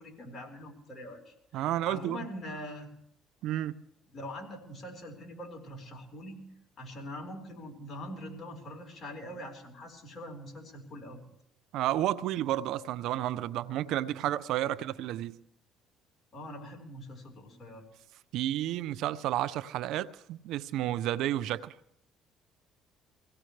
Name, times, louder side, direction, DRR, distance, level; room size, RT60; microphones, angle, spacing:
voice 1, 0.0-2.9 4.1-6.4 6.8-11.2 16.3-17.8, left 1 dB, 40° left, 4.3 m, -43 dB
voice 2, 1.5-2.3 3.4-3.8 11.7-15.4 18.3-21.7, right 13 dB, 75° right, 0.5 m, -31 dB
24.5 x 16.5 x 3.3 m
cardioid pair, 90°, 0 cm